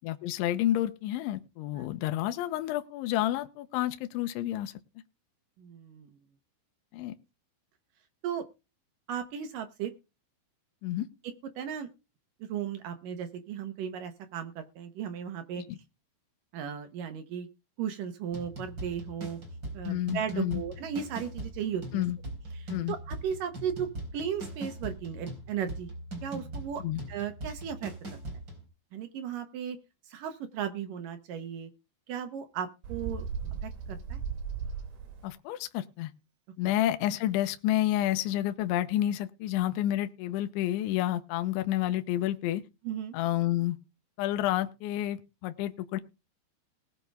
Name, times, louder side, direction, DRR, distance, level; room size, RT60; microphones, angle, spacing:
voice 1, 0.0-4.7 6.9-7.2 10.8-11.1 15.7-15.8 19.8-20.6 21.9-22.2 22.7-23.0 26.8-27.0 35.2-36.1 36.6-42.6 43.1-43.8 44.2-46.0, left 13 dB, 80° left, 8 dB, 3.2 m, -30 dB
voice 2, 5.6-6.1 8.2-8.5 9.1-9.9 11.2-11.9 12.4-15.6 16.5-17.5 17.8-19.4 19.7-22.0 22.5-25.9 26.2-26.8 27.1-27.9 28.9-29.8 30.1-31.7 32.1-33.3 33.6-34.2 42.8-43.2, right 8 dB, 75° right, 9 dB, 1.9 m, -36 dB
sound 1, 18.3-28.7, right 1 dB, 25° right, 4.3 m, -41 dB
Bird, 32.8-35.3, right 6 dB, 55° right, 3.7 m, -36 dB
20.0 x 7.0 x 3.5 m, 0.28 s
omnidirectional pair, 5.6 m